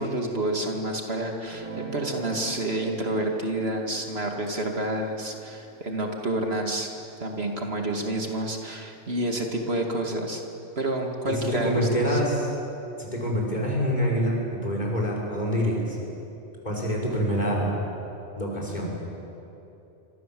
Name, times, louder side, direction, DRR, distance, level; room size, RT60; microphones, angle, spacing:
voice 1, 0.0-6.9 7.2-10.4 10.8-12.2, right 1 dB, 55° right, 2 dB, 2.6 m, -29 dB
Guitar, 1.4-8.0, right 3 dB, 30° right, 4.9 m, -43 dB
voice 2, 11.6-12.5 13.0-16.0 16.6-17.8 18.4-18.9, equal, 35° left, -2 dB, 6.3 m, -26 dB
27.5 x 25.0 x 7.8 m, 2.8 s
omnidirectional pair, 1.3 m